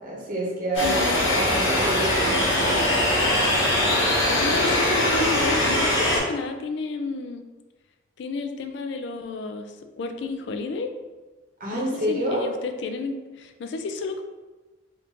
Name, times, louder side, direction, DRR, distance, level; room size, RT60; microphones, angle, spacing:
voice 1, 0.0-3.0 11.6-12.4, right 1 dB, 45° right, -4 dB, 0.9 m, -28 dB
sound 1, 0.7-6.2, left 1 dB, 80° left, 1.0 m, -21 dB
voice 2, 0.8-1.3 4.0-7.4 8.2-10.9 11.7-14.2, left 3 dB, 60° left, 6 dB, 0.3 m, -31 dB
3.5 x 2.5 x 2.8 m, 1.2 s
head